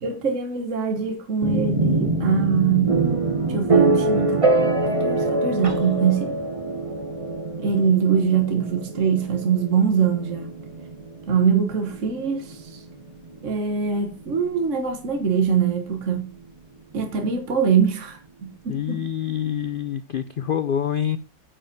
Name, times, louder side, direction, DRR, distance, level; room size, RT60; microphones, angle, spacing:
voice 1, 0.0-3.0 3.5-4.5 4.8-6.3 7.6-10.5 11.3-12.8 13.4-16.3 16.9-19.0, right 6 dB, 50° right, 1.7 m, -23 dB
sound 1, 1.4-15.2, right 2 dB, 20° right, 1.5 m, -25 dB
voice 2, 18.7-21.2, left 9 dB, 75° left, 0.5 m, -26 dB
9.8 x 5.4 x 7.8 m
omnidirectional pair, 1.7 m